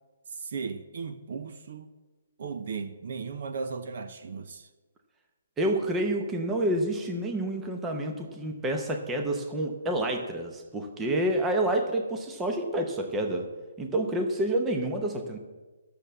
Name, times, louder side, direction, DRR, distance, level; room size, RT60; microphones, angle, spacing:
voice 1, 0.3-1.9 2.4-4.7, right 5 dB, 45° right, 0.7 m, -36 dB
voice 2, 5.6-13.5 13.8-15.4, right 1 dB, 10° right, 0.8 m, -28 dB
11.5 x 6.8 x 7.5 m
hypercardioid pair, 175°, 0 cm